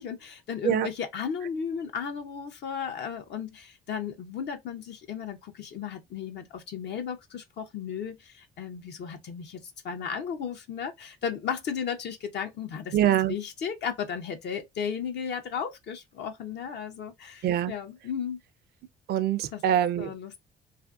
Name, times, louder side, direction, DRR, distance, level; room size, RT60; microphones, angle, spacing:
voice 1, 0.0-13.0 13.3-18.4 19.5-19.6 20.0-20.3, left 7 dB, 60° left, 0.5 m, -35 dB
voice 2, 12.9-13.3 17.4-17.7 19.1-20.1, right 11 dB, 55° right, 0.4 m, -24 dB
2.5 x 2.4 x 2.3 m
supercardioid pair, 70°, 20 cm